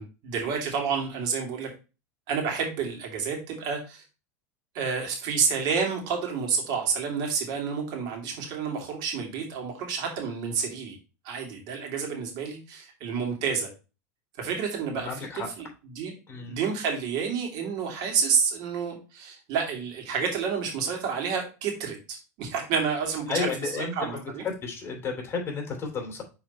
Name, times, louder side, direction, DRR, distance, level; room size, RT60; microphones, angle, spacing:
voice 1, 0.0-1.7 2.3-4.0 4.7-11.0 11.2-13.7 14.4-15.7 15.9-16.1 16.5-24.5, right 6 dB, 55° right, 2 dB, 2.8 m, -29 dB
voice 2, 15.0-15.5 16.3-16.6 23.3-26.2, left 4 dB, 25° left, 2 dB, 3.0 m, -32 dB
6.0 x 4.2 x 4.3 m, 0.30 s
hypercardioid pair, 100°, 9 cm